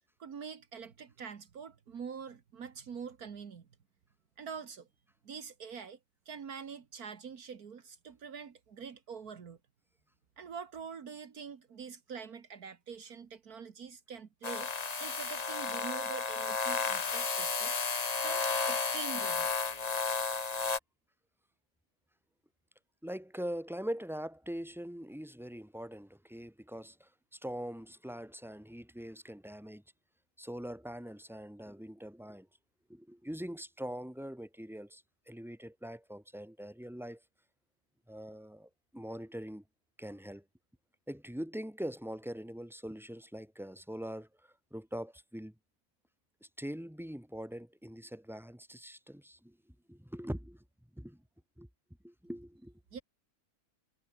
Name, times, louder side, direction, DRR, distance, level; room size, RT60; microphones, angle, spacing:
voice 1, 0.2-3.7 4.4-4.9 5.2-6.0 6.3-9.6 10.4-14.7 15.0-17.7 18.2-19.5 52.9-53.0, right 6 dB, 75° right, 2.0 m, -45 dB
sound 1, 14.4-20.8, left 4 dB, 30° left, 1.0 m, -33 dB
voice 2, 23.0-29.8 30.4-32.5 32.9-37.2 38.1-39.6 40.0-40.4 41.1-45.5 46.4-50.6 50.9-51.2 51.6-51.7 52.0-52.7, equal, ahead, 4.7 m, -43 dB
omnidirectional pair, 1.6 m